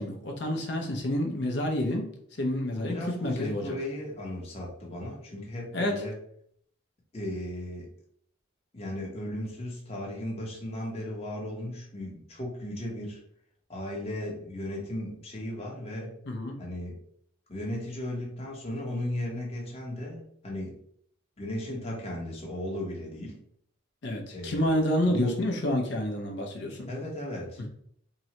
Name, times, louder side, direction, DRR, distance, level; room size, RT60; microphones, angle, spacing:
voice 1, 0.0-3.7 5.7-6.0 16.3-16.6 24.0-26.9 27.6-27.7, left 1 dB, 55° left, 2 dB, 0.6 m, -29 dB
voice 2, 2.7-6.2 7.1-7.9 8.7-13.2 13.7-16.2 16.6-17.0 17.5-20.8 21.4-23.4 24.3-25.4 26.9-27.6, left 1 dB, 30° left, -2 dB, 0.9 m, -36 dB
3.7 x 2.1 x 2.9 m, 0.67 s
head